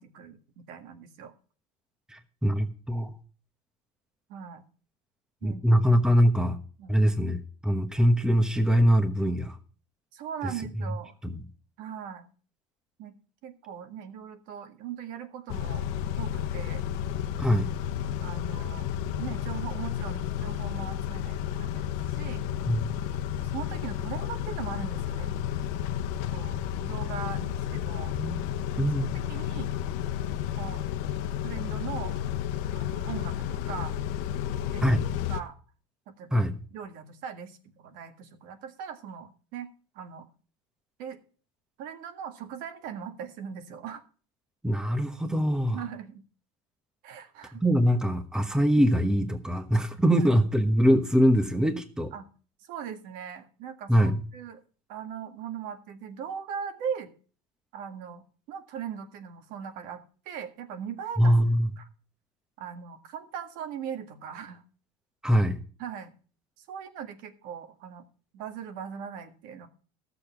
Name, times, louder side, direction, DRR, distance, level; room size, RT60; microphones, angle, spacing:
voice 1, 0.0-1.3 4.3-4.6 5.4-5.6 6.8-7.0 10.1-11.1 11.8-12.3 13.0-13.2 13.4-15.9 16.2-16.8 18.2-22.5 23.0-25.3 26.3-28.2 29.3-29.7 30.6-30.8 31.4-32.2 32.7-34.0 34.6-34.8 35.3-35.6 36.1-39.7 39.9-40.3 41.0-41.2 41.8-44.0 45.7-46.2 47.0-47.6 50.1-50.3 52.1-52.3 52.6-54.6 54.9-57.1 57.7-61.9 62.6-64.6 65.8-66.1 66.6-68.0 68.3-69.7, right 8 dB, 65° right, 7 dB, 1.8 m, -40 dB
voice 2, 2.1-3.1 5.4-6.6 6.9-9.6 11.2-11.4 17.4-17.7 22.7-23.0 28.2-28.4 28.8-29.2 34.8-35.0 36.3-36.6 44.6-45.8 47.6-52.1 53.9-54.2 61.2-61.7 65.2-65.6, equal, 5° right, 8 dB, 1.1 m, -23 dB
Car / Idling / Accelerating revving vroom, 15.5-35.4, left 10 dB, 65° left, 1.0 m, -32 dB
13.5 x 7.0 x 5.8 m, 0.40 s
supercardioid pair, 120°, 16 cm